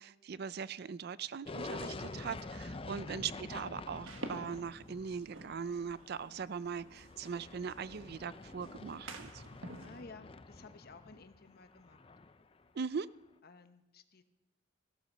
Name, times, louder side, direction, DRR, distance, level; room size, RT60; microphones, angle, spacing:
voice 1, 0.0-9.5 12.7-13.1, right 6 dB, 55° right, 17 dB, 0.4 m, -40 dB
sound 1, 1.5-12.7, left 3 dB, 30° left, 0.6 m, -47 dB
sound 2, 4.0-10.0, right 2 dB, 85° right, 1.5 m, -50 dB
voice 2, 9.8-12.0 13.4-14.2, left 3 dB, 50° left, 9 dB, 1.0 m, -55 dB
15.5 x 12.5 x 5.5 m, 0.95 s
head